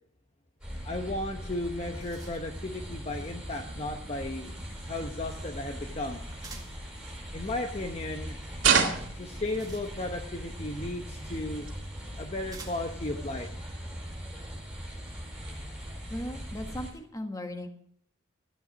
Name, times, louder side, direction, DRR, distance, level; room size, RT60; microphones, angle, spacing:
sound 1, 0.6-16.9, equal, 5° right, 5.4 m, -40 dB
voice 1, 0.8-4.5 4.8-6.2 7.3-8.4 9.1-11.7 12.2-13.5, left 2 dB, 35° left, 4 dB, 0.9 m, -35 dB
sound 2, 1.8-2.7 6.4-6.9 9.1-10.3 11.4-11.5 12.5-13.0, right 4 dB, 20° right, 2.0 m, -50 dB
sound 3, 6.5-8.2 8.6-10.1 10.6-12.0 12.3-12.7 13.0-13.1 13.4-13.8 14.3-14.4 14.8-15.3 15.6-16.8, right 6 dB, 80° right, 2.3 m, -32 dB
voice 2, 16.1-17.7, left 1 dB, 20° left, 5 dB, 1.5 m, -37 dB
14.0 x 9.3 x 6.3 m, 0.69 s
head